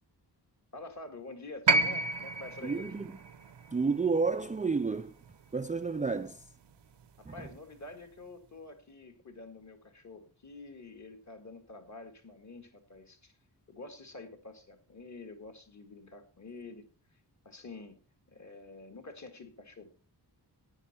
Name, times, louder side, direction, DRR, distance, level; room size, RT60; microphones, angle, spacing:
voice 1, 0.7-2.9 7.2-13.3 13.7-16.9 17.1-17.2 17.4-18.0 18.3-19.9, left 3 dB, 40° left, 2.0 m, -48 dB
sound 1, 1.7-5.8 7.0-7.1, right 3 dB, 85° right, 0.9 m, -31 dB
voice 2, 2.6-3.1 3.7-5.1 5.5-6.5 7.2-7.5, right 4 dB, 20° right, 0.4 m, -31 dB
10.5 x 9.9 x 4.3 m
wide cardioid pair, 145°, 41 cm